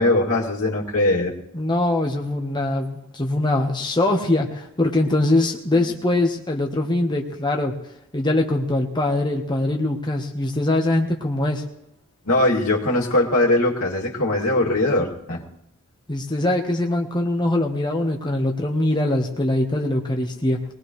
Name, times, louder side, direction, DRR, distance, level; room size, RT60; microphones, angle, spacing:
voice 1, 0.0-1.3 12.3-15.4, left 1 dB, 75° left, -2 dB, 2.6 m, -20 dB
voice 2, 1.5-7.8 8.1-11.6 16.1-20.6, left 1 dB, 20° left, 2 dB, 1.2 m, -22 dB
21.5 x 19.5 x 3.2 m, 0.81 s
head